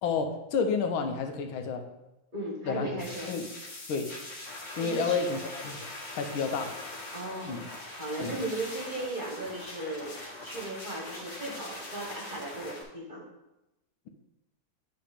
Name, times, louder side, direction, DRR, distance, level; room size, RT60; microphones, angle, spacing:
voice 1, 0.0-1.8 2.6-3.5 3.9-4.1 4.8-5.8 6.1-6.7 7.4-7.7 8.2-8.4, left 5 dB, 85° left, 5 dB, 1.6 m, -30 dB
voice 2, 2.3-3.3 4.8-5.2 7.1-10.2 10.4-13.3, right 2 dB, 30° right, -2 dB, 1.2 m, -36 dB
sound 1, 3.0-12.8, left 2 dB, 60° left, 2.4 m, -42 dB
9.9 x 3.4 x 5.1 m, 0.96 s
omnidirectional pair, 2.2 m